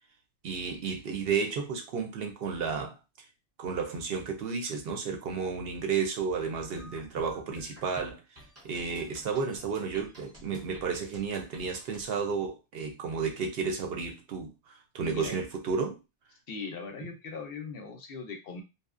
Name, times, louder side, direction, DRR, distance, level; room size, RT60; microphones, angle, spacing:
voice 1, 0.4-3.3 3.6-16.0, right 5 dB, 65° right, 0.7 m, -32 dB
sound 1, 6.6-12.1, equal, 15° right, 0.5 m, -52 dB
voice 2, 15.0-15.4 16.5-18.6, left 4 dB, 65° left, 0.7 m, -39 dB
2.7 x 2.0 x 2.4 m
omnidirectional pair, 1.2 m